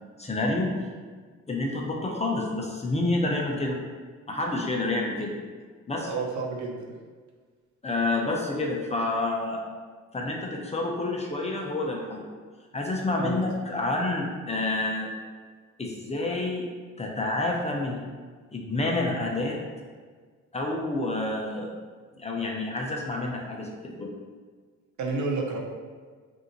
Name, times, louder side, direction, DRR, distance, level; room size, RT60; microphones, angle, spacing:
voice 1, 0.2-0.7 1.5-3.8 4.3-5.3 5.9-6.1 7.8-9.6 10.1-12.2 12.7-15.1 15.8-16.6 17.0-18.0 18.5-19.6 20.5-21.7 22.2-24.1, left 2 dB, 20° left, -1 dB, 0.8 m, -28 dB
voice 2, 6.1-6.9 13.2-13.4 25.0-25.6, right 3 dB, 70° right, -1 dB, 0.9 m, -30 dB
5.3 x 2.7 x 3.1 m, 1.5 s
cardioid pair, 90°, 30 cm